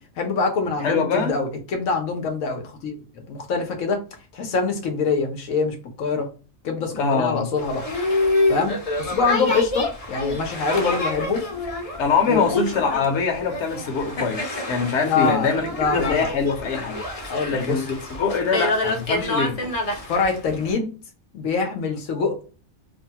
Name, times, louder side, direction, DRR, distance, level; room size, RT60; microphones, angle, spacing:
voice 1, 0.2-4.0 4.3-6.3 6.6-7.8 8.5-11.4 12.2-12.5 15.0-16.3 17.3-17.9 20.1-20.9 21.3-22.4, left 4 dB, 90° left, 1.2 m, -24 dB
voice 2, 0.8-1.3 7.0-7.5 12.0-15.6 15.9-17.0 17.5-19.6, left 5 dB, 65° left, 1.1 m, -23 dB
Boat Water vehicle, 7.6-20.7, left 2 dB, 35° left, 0.6 m, -27 dB
3.2 x 2.2 x 2.7 m
omnidirectional pair, 1.3 m